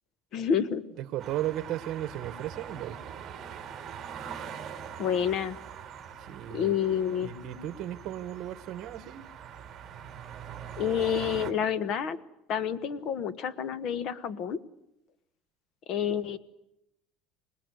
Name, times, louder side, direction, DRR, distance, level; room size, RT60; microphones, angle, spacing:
voice 1, 0.3-0.8 5.0-5.6 6.5-7.3 10.8-12.2 12.5-14.6 15.9-16.4, left 8 dB, 45° left, 16 dB, 1.2 m, -28 dB
voice 2, 1.0-3.0 6.2-6.7 7.2-9.3, right 13 dB, 45° right, 13 dB, 1.6 m, -35 dB
sound 1, 1.2-11.5, right 8 dB, 25° right, 3.7 m, -43 dB
26.0 x 20.0 x 9.7 m, 0.84 s
cardioid pair, 155°, 0 cm